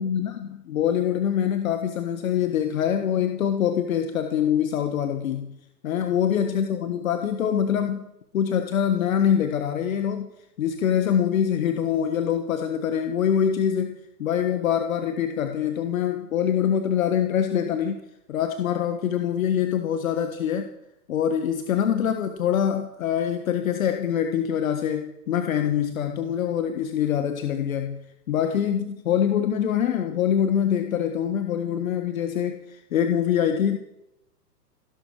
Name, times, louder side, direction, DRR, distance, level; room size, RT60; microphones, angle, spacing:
voice 1, 0.0-5.5 5.8-8.1 8.3-10.3 10.6-18.0 18.3-20.7 21.1-28.0 28.3-33.8, left 9 dB, 55° left, 7 dB, 1.5 m, -24 dB
15.5 x 11.5 x 6.5 m, 0.86 s
figure-of-eight pair, 115°, 49 cm